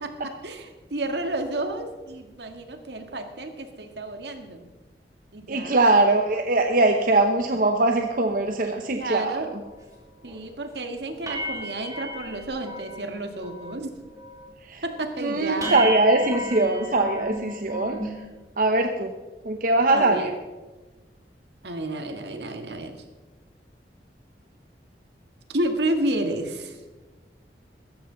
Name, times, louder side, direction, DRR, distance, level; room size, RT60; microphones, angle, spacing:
voice 1, 0.0-4.7 5.3-5.8 8.9-9.5 10.2-13.9 14.8-15.8 19.9-20.3 21.6-23.0 25.5-26.8, right 1 dB, 70° right, 6 dB, 1.8 m, -31 dB
voice 2, 5.5-9.6 14.6-14.8 15.2-18.2 18.6-19.1 19.4-20.3, right 2 dB, 50° right, 4 dB, 0.9 m, -22 dB
sound 1, 9.7-9.8 10.2-10.5 10.8-10.9 11.2-13.1 13.3-13.8 14.1-14.5 14.9-15.0 15.6-18.2, right 1 dB, 20° right, 2.5 m, -34 dB
16.5 x 14.0 x 4.0 m, 1.3 s
head